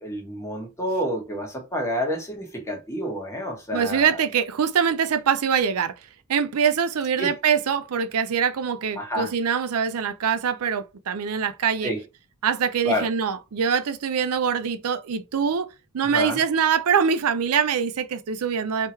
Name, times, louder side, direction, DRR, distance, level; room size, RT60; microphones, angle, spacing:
voice 1, 0.0-4.1 7.2-7.3 9.0-9.3 11.8-12.0 12.8-13.1 16.1-16.4, equal, 15° left, 1.3 m, -28 dB
voice 2, 3.7-5.9 6.3-11.9 12.4-15.7 15.9-18.9, right 7 dB, 70° right, 0.5 m, -24 dB
3.6 x 3.0 x 4.2 m
head